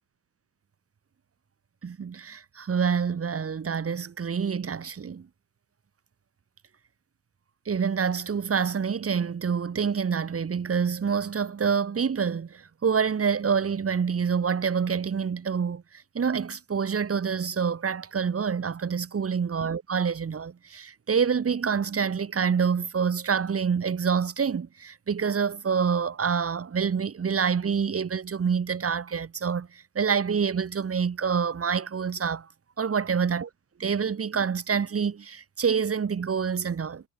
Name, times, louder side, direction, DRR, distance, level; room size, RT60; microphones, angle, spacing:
voice 1, 1.8-5.3 7.7-15.8 16.1-32.5 32.8-33.5 33.8-37.0, right 6 dB, 30° right, 7.5 m, -27 dB
hypercardioid pair, 75°, 45 cm